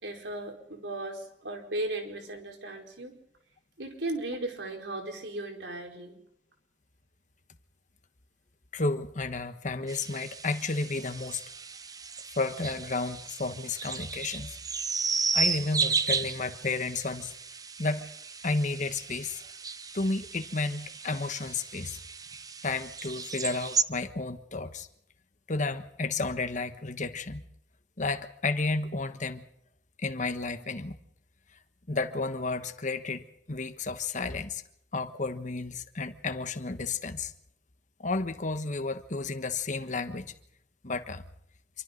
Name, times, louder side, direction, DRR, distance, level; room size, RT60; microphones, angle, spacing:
voice 1, 0.0-3.2 3.8-6.2, right 2 dB, 80° right, 3 dB, 4.7 m, -36 dB
voice 2, 8.7-11.4 12.3-14.6 15.3-17.3 17.8-18.1 18.4-19.4 19.9-22.0 22.6-24.9 25.5-27.4 28.0-29.4 30.0-31.0 31.9-34.6 34.9-37.3 38.0-40.3 40.8-41.2, left 3 dB, 45° left, 9 dB, 1.4 m, -32 dB
sound 1, 9.9-23.8, right 5 dB, 20° right, 0.7 m, -34 dB
27.0 x 24.5 x 4.0 m, 0.74 s
head